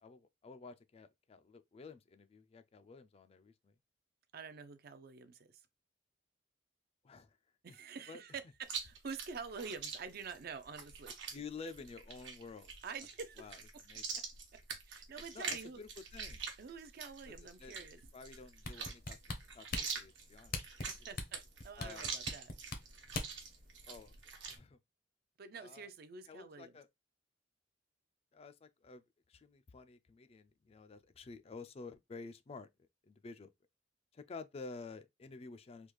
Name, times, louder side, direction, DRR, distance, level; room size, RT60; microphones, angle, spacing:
voice 1, 0.0-3.7 7.0-7.3 7.7-7.8 8.1-8.2 11.3-12.7 13.4-13.6 13.9-14.2 15.3-16.4 17.3-17.4 17.6-17.8 18.1-19.2 19.5-20.6 20.8-20.9 21.8-22.1 23.9-24.1 24.4-24.8 25.5-25.9 26.3-26.9 28.3-29.0 29.3-32.7 33.0-33.5 34.1-35.9, left 4 dB, 35° left, 0.4 m, -51 dB
voice 2, 4.3-5.6 7.6-11.4 12.8-13.5 14.2-14.3 14.5-14.6 14.9-15.8 16.6-18.0 20.9-22.5 25.4-26.8, right 5 dB, 55° right, 0.4 m, -47 dB
Chewing mastication, 8.6-24.6, right 5 dB, 80° right, 1.0 m, -45 dB
sound 1, 18.6-23.5 23.9-24.0, left 2 dB, 55° left, 0.7 m, -41 dB
3.4 x 2.3 x 3.0 m
head